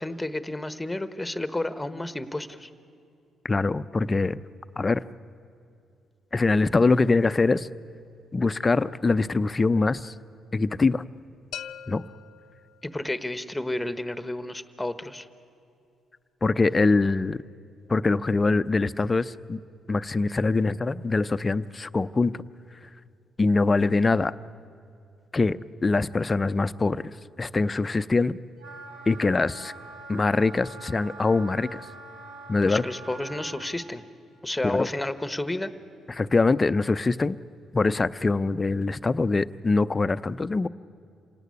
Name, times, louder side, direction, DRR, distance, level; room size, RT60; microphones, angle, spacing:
voice 1, 0.0-2.7 12.8-15.3 32.6-34.0 34.4-35.7, left 1 dB, 10° left, 12 dB, 1.3 m, -31 dB
voice 2, 3.4-4.4 4.8-5.0 6.3-7.7 8.3-10.1 10.5-11.0 11.9-12.0 16.4-17.4 17.9-19.6 19.9-22.3 23.4-24.3 25.3-27.1 27.4-28.4 29.1-29.7 30.1-31.9 32.5-32.8 34.6-34.9 36.1-37.4 37.7-40.7, left 3 dB, 30° left, 14 dB, 0.6 m, -23 dB
sound 1, 11.5-13.4, left 9 dB, 80° left, 0.7 m, -42 dB
Wind instrument woodwind instrument, 28.6-33.8, right 3 dB, 85° right, 2.1 m, -44 dB
27.0 x 17.5 x 9.7 m, 2.5 s
cardioid pair, 80°, 0 cm